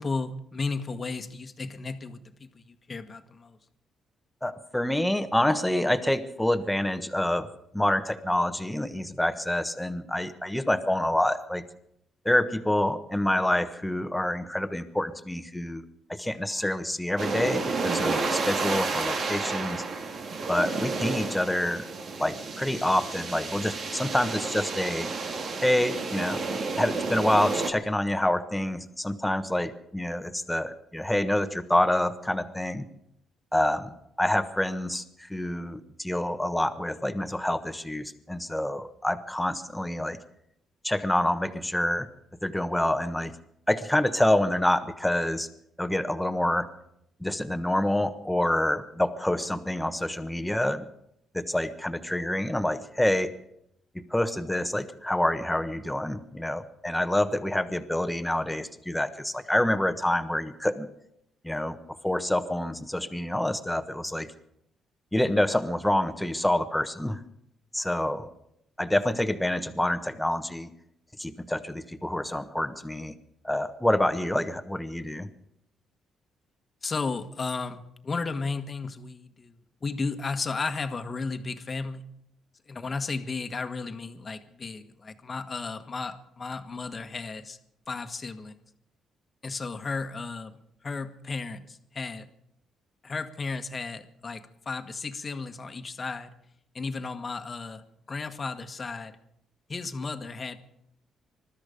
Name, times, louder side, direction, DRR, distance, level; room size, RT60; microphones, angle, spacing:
voice 1, 0.0-3.6 76.8-82.1 82.7-87.6 87.9-88.6 89.4-92.3 93.0-96.3 96.7-97.8 98.1-99.2 99.7-100.6, left 4 dB, 35° left, 8 dB, 1.4 m, -34 dB
voice 2, 4.4-7.5 7.7-11.6 12.2-15.8 16.1-19.8 20.5-21.8 22.2-25.1 25.6-26.4 26.8-32.9 33.5-40.2 40.8-42.1 42.4-43.3 43.7-45.5 45.8-46.7 47.2-50.9 51.3-53.3 53.9-60.9 61.4-61.8 62.0-64.3 65.1-67.2 67.7-68.3 68.8-70.7 71.2-73.1 73.4-75.3, left 1 dB, 5° left, 9 dB, 1.3 m, -27 dB
sound 1, 17.2-27.7, right 4 dB, 55° right, 2.1 m, -31 dB
21.0 x 13.0 x 5.2 m, 0.74 s
cardioid pair, 90°, 0 cm